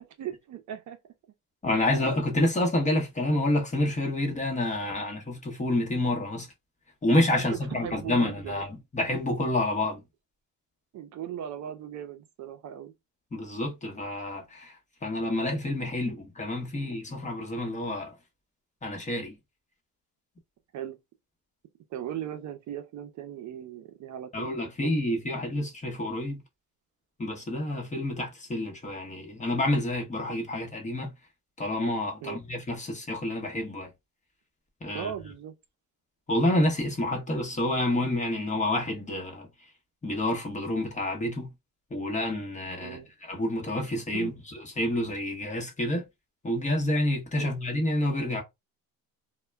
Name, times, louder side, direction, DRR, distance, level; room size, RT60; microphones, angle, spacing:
voice 1, 0.2-1.0 1.7-2.0 7.5-8.6 10.9-12.9 16.7-17.0 20.7-21.0 21.9-24.9 32.2-32.4 34.9-35.5 42.8-43.1 44.1-44.4 47.4-47.5, right 10 dB, 50° right, 0.5 m, -38 dB
voice 2, 1.6-6.5 7.0-10.0 13.3-14.7 15.0-18.1 18.8-19.4 24.3-26.4 27.2-31.2 31.6-33.9 34.8-35.1 36.3-39.5 40.0-41.5 41.9-44.3 44.8-46.0 46.4-48.4, left 1 dB, 20° left, 0.9 m, -28 dB
2.1 x 2.1 x 3.3 m
cardioid pair, 105°, 36 cm